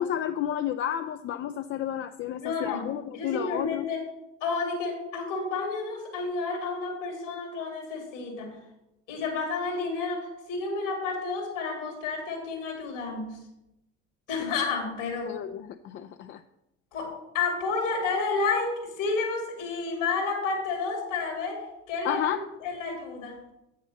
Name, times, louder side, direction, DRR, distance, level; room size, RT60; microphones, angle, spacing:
voice 1, 0.0-3.9 15.3-16.4 22.0-22.4, left 10 dB, 35° left, 9 dB, 0.4 m, -31 dB
voice 2, 2.4-2.8 3.1-4.0 4.4-8.6 9.1-13.4 14.3-15.3 16.9-23.5, left 4 dB, 75° left, 1 dB, 2.5 m, -31 dB
8.3 x 6.5 x 5.2 m, 0.89 s
figure-of-eight pair, 60°, 37 cm